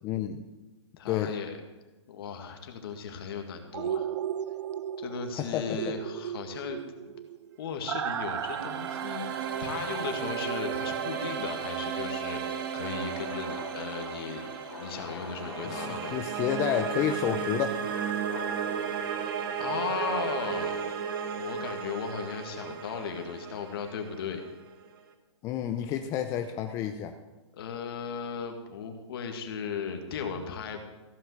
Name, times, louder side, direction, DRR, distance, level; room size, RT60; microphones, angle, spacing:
voice 1, 0.0-0.4 1.1-1.3 5.4-5.8 15.6-17.8 25.4-27.2, left 10 dB, 20° left, 6 dB, 0.5 m, -30 dB
voice 2, 1.0-1.6 2.1-4.1 5.0-6.8 7.1-7.2 7.6-9.3 9.6-14.4 14.8-16.2 19.6-20.8 21.4-24.4 27.6-30.8, left 6 dB, 50° left, 4 dB, 1.9 m, -36 dB
sound 1, 3.7-11.6 12.0-12.1, right 9 dB, 65° right, 0.7 m, -36 dB
sound 2, 7.9-25.0, right 7 dB, 45° right, 1.3 m, -34 dB
sound 3, 12.8-21.0, left 4 dB, 85° left, 2.9 m, -46 dB
15.0 x 5.6 x 7.9 m, 1.2 s
hypercardioid pair, 155°, 16 cm